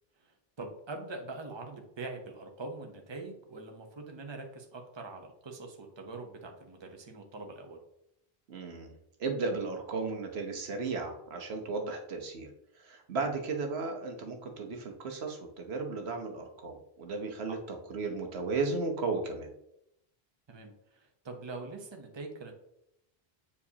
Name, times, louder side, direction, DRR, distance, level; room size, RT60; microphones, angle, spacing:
voice 1, 0.1-7.8 20.5-22.5, right 3 dB, 30° right, 3 dB, 0.9 m, -43 dB
voice 2, 8.5-8.9 9.2-12.5 12.8-19.5, right 3 dB, 80° right, 3 dB, 1.2 m, -35 dB
8.2 x 4.9 x 2.8 m, 0.80 s
omnidirectional pair, 1.1 m